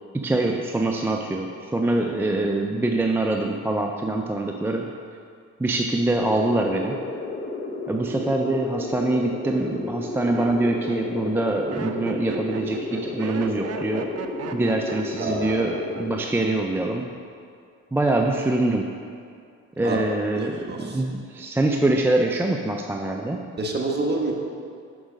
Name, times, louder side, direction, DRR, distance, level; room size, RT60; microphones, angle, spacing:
voice 1, 0.1-4.9 5.6-7.0 7.9-14.1 14.5-17.1 17.9-19.0 19.8-23.4, right 2 dB, 10° right, 2 dB, 0.4 m, -24 dB
sound 1, 6.2-16.2, left 2 dB, 40° left, 0.9 m, -32 dB
Laughter, 10.2-16.6 16.8-17.4, right 6 dB, 55° right, 0.6 m, -37 dB
voice 2, 15.2-15.7 19.8-20.0 20.3-21.0 23.6-24.3, right 2 dB, 35° right, 0 dB, 1.2 m, -28 dB
6.2 x 6.1 x 5.0 m, 2.3 s
cardioid pair, 90°, 30 cm